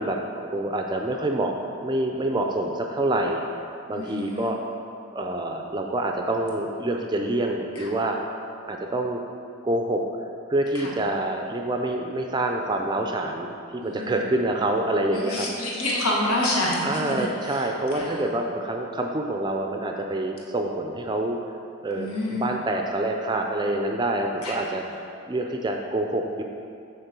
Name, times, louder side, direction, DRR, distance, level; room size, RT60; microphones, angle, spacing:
voice 1, 0.0-3.4 3.9-4.6 5.1-8.2 8.7-9.2 9.6-10.0 10.5-15.7 16.8-21.4 21.8-24.8 25.3-26.4, right 1 dB, 20° right, 2 dB, 0.4 m, -26 dB
voice 2, 4.0-4.5 10.7-10.9 13.8-14.2 15.1-17.6 17.9-18.2 22.0-22.4 24.4-24.7, left 1 dB, 80° left, -4 dB, 1.4 m, -28 dB
6.5 x 3.9 x 6.0 m, 2.4 s
head